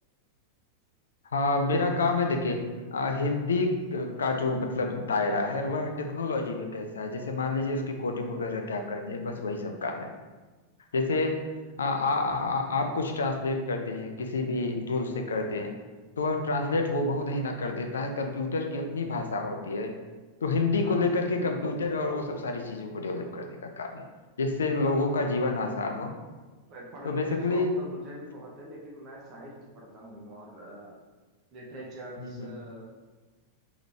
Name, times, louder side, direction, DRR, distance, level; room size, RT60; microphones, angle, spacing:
voice 1, 1.3-10.1 10.9-11.4 11.8-15.7 16.2-20.0 20.4-24.0 24.4-26.1 27.0-27.8 32.2-32.5, left 3 dB, 70° left, 4 dB, 0.5 m, -29 dB
voice 2, 26.7-31.0 31.5-32.8, right 1 dB, 35° right, -3 dB, 0.8 m, -44 dB
4.0 x 2.9 x 3.2 m, 1.3 s
figure-of-eight pair, 90°, 0 cm